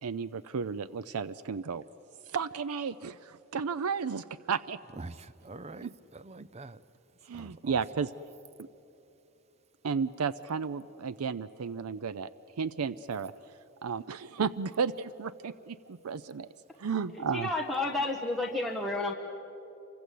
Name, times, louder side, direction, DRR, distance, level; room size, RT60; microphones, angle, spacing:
voice 1, 0.0-1.8 2.3-4.8 5.8-5.9 7.3-8.1 8.6-8.7 9.8-12.3 12.6-13.3 13.8-16.5 16.8-17.5, right 6 dB, 90° right, 16 dB, 0.5 m, -33 dB
voice 2, 4.9-6.8 7.3-7.8, right 2 dB, 30° right, 16 dB, 0.6 m, -45 dB
voice 3, 17.3-19.1, left 2 dB, ahead, -1 dB, 1.4 m, -31 dB
28.0 x 24.5 x 8.4 m, 3.0 s
head